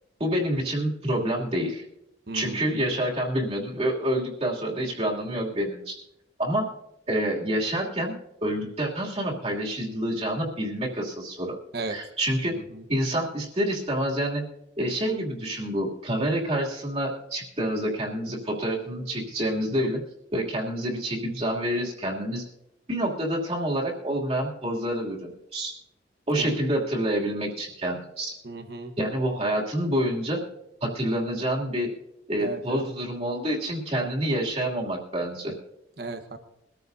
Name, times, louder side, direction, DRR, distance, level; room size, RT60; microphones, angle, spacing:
voice 1, 0.2-1.8 2.3-5.9 6.4-6.7 7.1-8.1 8.4-11.6 11.9-12.6 12.9-14.4 14.8-20.0 20.3-22.4 22.9-25.7 26.3-28.3 29.0-30.4 30.8-31.9 32.3-35.5, right 1 dB, 35° right, -3 dB, 2.9 m, -27 dB
voice 2, 2.3-2.6 11.7-12.0 12.5-12.8 26.3-26.5 28.4-28.9 32.4-32.9 36.0-36.4, right 2 dB, 60° right, 7 dB, 1.3 m, -35 dB
23.5 x 14.0 x 2.8 m, 0.84 s
head